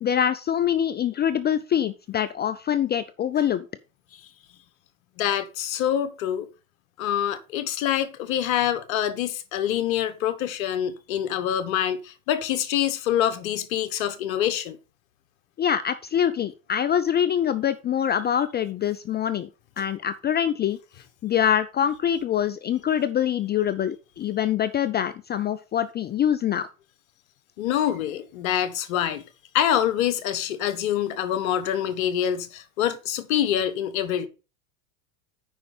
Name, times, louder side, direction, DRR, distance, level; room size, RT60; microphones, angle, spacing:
voice 1, 0.0-3.6 15.6-19.5 19.8-20.8 21.2-26.7, left 9 dB, 25° left, 0.5 m, -24 dB
voice 2, 5.2-6.5 7.0-14.8 27.6-29.2 29.5-34.3, left 10 dB, 75° left, 1.4 m, -25 dB
9.2 x 5.2 x 5.5 m
hypercardioid pair, 100°, 42 cm